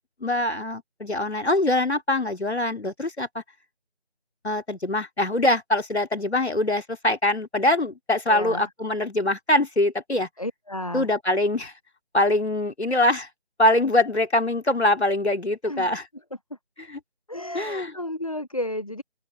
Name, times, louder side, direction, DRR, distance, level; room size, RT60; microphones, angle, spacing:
voice 1, 0.0-3.4 4.4-10.3 10.9-11.7 12.1-13.3 13.6-16.1 16.9-17.0 17.5-17.9, left 1 dB, 80° left, 2.7 m, -23 dB
voice 2, 8.3-8.7 10.4-11.1 15.6-15.9 17.3-19.0, left 1 dB, 35° left, 0.6 m, -32 dB
open air
figure-of-eight pair, 165°, 33 cm